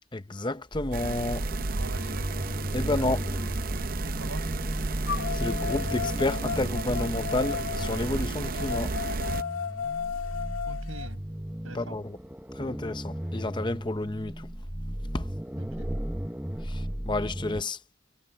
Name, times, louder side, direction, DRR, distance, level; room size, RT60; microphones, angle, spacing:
voice 1, 0.1-1.5 2.7-3.3 5.3-8.9 11.7-12.2 12.6-14.5 15.1-15.3 16.6-17.8, left 2 dB, 20° left, 0.6 m, -30 dB
sound 1, 0.7-17.6, equal, 5° right, 0.8 m, -35 dB
sound 2, 0.9-9.4, right 3 dB, 45° right, 0.6 m, -32 dB
sound 3, 1.2-1.3 1.9-3.8 5.0-11.1, left 7 dB, 85° left, 2.0 m, -35 dB
voice 2, 1.7-2.4 3.0-3.2 4.1-4.4 10.7-11.2 11.6-11.9 15.6-15.9, right 2 dB, 85° right, 5.1 m, -43 dB
head